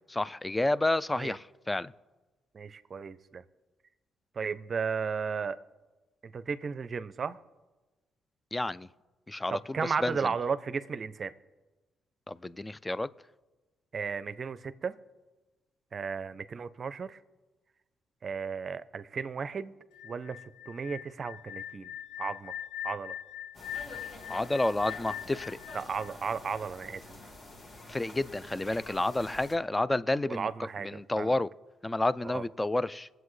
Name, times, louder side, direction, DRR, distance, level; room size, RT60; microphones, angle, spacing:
voice 1, 0.1-1.9 8.5-8.9 9.3-10.2 12.3-13.1 24.3-25.6 27.9-31.5 31.8-33.1, left 2 dB, 15° left, 18 dB, 0.4 m, -30 dB
voice 2, 2.5-3.4 4.3-5.6 6.2-7.4 9.5-11.3 13.9-14.9 15.9-17.2 18.2-19.7 20.0-20.4 20.7-21.9 22.2-22.5 22.8-23.1 25.7-27.0 30.3-31.3 32.2-32.4, right 5 dB, 45° right, 14 dB, 0.6 m, -34 dB
sound 1, 19.9-26.8, left 11 dB, 90° left, 0.4 m, -42 dB
sound 2, 23.5-29.6, left 1 dB, 40° left, 1.8 m, -48 dB
22.5 x 7.8 x 3.2 m, 1.2 s
cardioid pair, 90°, 0 cm